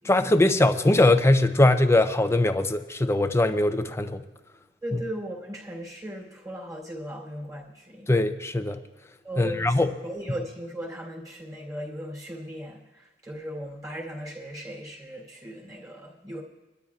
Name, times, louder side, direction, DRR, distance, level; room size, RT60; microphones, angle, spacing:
voice 1, 0.1-4.2 8.1-8.8 9.4-9.9, left 2 dB, 15° left, 0.6 m, -21 dB
voice 2, 4.8-8.1 9.2-16.4, equal, 20° right, 3.2 m, -37 dB
23.5 x 12.5 x 2.4 m
head